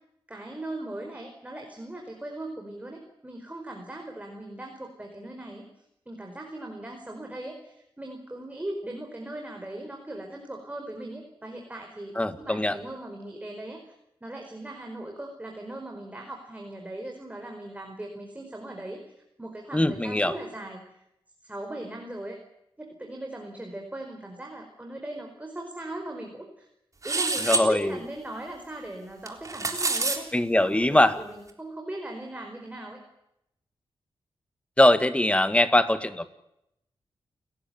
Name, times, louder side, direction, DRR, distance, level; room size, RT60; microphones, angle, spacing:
voice 1, 0.3-5.6 6.0-13.8 14.2-19.0 19.4-21.0 21.4-22.4 22.8-26.7 27.0-30.3 30.5-33.0, right 1 dB, 15° right, 2 dB, 5.0 m, -39 dB
voice 2, 12.2-12.8 19.7-20.4 27.4-28.0 30.3-31.2 34.8-36.3, left 1 dB, 15° left, 11 dB, 1.9 m, -22 dB
sound 1, 27.0-27.7 29.3-30.2, right 2 dB, 35° right, 3.7 m, -26 dB
29.0 x 15.0 x 9.4 m, 0.81 s
cardioid pair, 85°, 9 cm